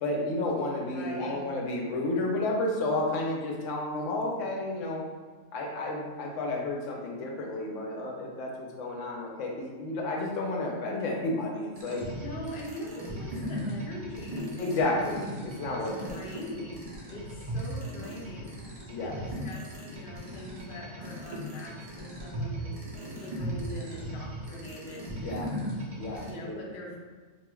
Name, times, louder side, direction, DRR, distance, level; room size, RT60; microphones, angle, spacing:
voice 1, 0.0-5.0 5.5-12.0 14.6-16.1 18.9-19.2 25.1-25.5 25.9-26.6, left 2 dB, 75° left, -1 dB, 0.9 m, -31 dB
voice 2, 0.9-1.4 11.9-15.1 15.6-18.6 19.0-22.8 23.1-25.6 26.3-27.0, left 1 dB, 55° left, -2 dB, 0.6 m, -42 dB
sound 1, 11.7-26.3, equal, 55° right, 0.4 m, -38 dB
3.0 x 2.5 x 2.2 m, 1.4 s
omnidirectional pair, 1.3 m